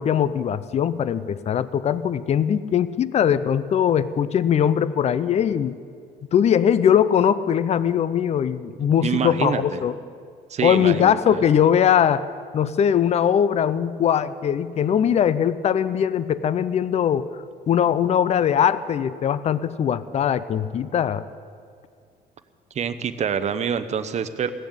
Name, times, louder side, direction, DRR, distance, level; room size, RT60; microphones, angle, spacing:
voice 1, 0.0-5.8 6.3-9.9 10.6-12.2 12.5-17.3 17.7-21.2, left 9 dB, 40° left, 16 dB, 0.5 m, -21 dB
voice 2, 9.0-9.8 10.5-11.5 22.7-24.5, right 7 dB, 40° right, 11 dB, 0.8 m, -26 dB
16.5 x 7.2 x 9.7 m, 2.3 s
cardioid pair, 110°, 17 cm